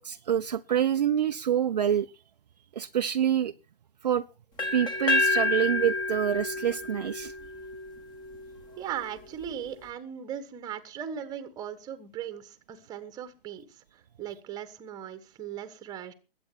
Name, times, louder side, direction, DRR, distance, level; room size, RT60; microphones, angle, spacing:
voice 1, 0.0-2.1 2.8-3.5 4.0-4.2 4.7-7.3, right 9 dB, 45° right, 0.6 m, -26 dB
sound 1, 4.6-8.5, left 2 dB, 15° left, 1.5 m, -29 dB
voice 2, 8.8-16.1, right 9 dB, 15° right, 1.3 m, -38 dB
21.0 x 8.7 x 4.5 m
figure-of-eight pair, 130°, 29 cm